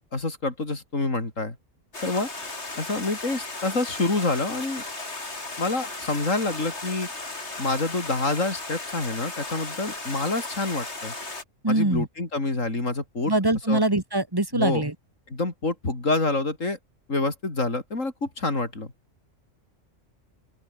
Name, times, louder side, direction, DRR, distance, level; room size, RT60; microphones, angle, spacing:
voice 1, 0.1-1.6 2.0-2.5 2.8-4.8 5.6-7.1 7.6-11.1 11.7-13.3 13.7-13.8 14.5-14.8 15.3-16.8 17.1-18.9, left 2 dB, 75° left, 4.9 m, -27 dB
Stream, 1.9-11.4, left 2 dB, 55° left, 4.1 m, -36 dB
voice 2, 11.6-12.1 13.3-14.9, right 2 dB, 15° right, 1.8 m, -23 dB
open air
omnidirectional pair, 1.4 m